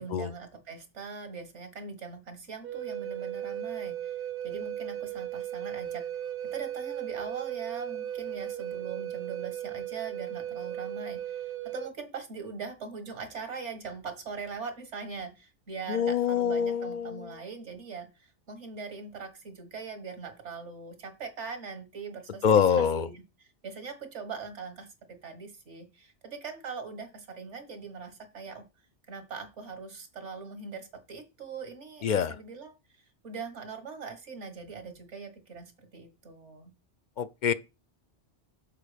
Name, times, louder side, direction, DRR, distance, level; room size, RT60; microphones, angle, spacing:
voice 1, 0.0-4.2 4.4-6.0 6.5-28.6 29.1-32.7 33.2-36.7, right 5 dB, 80° right, 1.9 m, -41 dB
Wind instrument woodwind instrument, 2.6-11.9, right 11 dB, 60° right, 0.7 m, -36 dB
voice 2, 15.9-17.3 22.4-23.1 32.0-32.3 37.2-37.5, left 7 dB, 60° left, 0.5 m, -25 dB
6.9 x 4.6 x 5.0 m
omnidirectional pair, 1.2 m